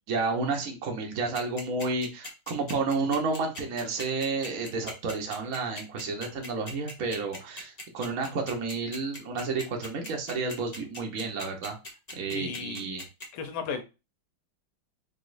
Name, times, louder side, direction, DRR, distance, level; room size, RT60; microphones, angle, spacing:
voice 1, 0.1-11.8 12.1-13.0, right 4 dB, 50° right, 1 dB, 1.2 m, -31 dB
sound 1, 1.3-13.3, left 2 dB, 30° left, 0.7 m, -40 dB
voice 2, 12.3-12.8 13.3-13.8, left 6 dB, 90° left, 8 dB, 1.7 m, -34 dB
4.0 x 3.5 x 2.6 m, 0.28 s
omnidirectional pair, 2.4 m